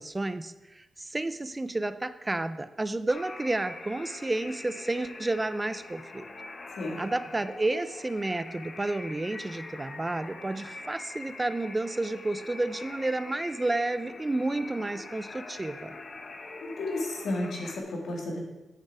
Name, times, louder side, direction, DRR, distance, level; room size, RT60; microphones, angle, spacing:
voice 1, 0.0-6.2 7.0-16.0, right 2 dB, 15° right, 12 dB, 0.3 m, -31 dB
sound 1, 3.1-17.8, left 3 dB, 40° left, 0.9 m, -44 dB
voice 2, 16.6-18.4, left 1 dB, 80° left, -1 dB, 2.1 m, -32 dB
8.1 x 7.0 x 4.7 m, 1.0 s
wide cardioid pair, 135°, 0 cm